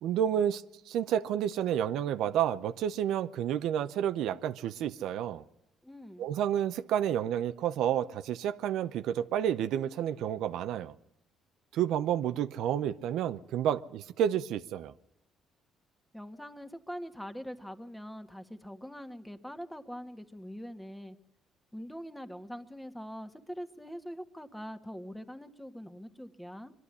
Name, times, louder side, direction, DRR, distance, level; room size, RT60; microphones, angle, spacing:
voice 1, 0.0-5.4 6.2-10.9 11.7-14.9, right 10 dB, 75° right, 0.7 m, -30 dB
voice 2, 5.8-6.2 16.1-21.2 21.7-26.7, equal, 5° left, 1.6 m, -43 dB
23.0 x 12.0 x 9.8 m
cardioid pair, 85°, 0 cm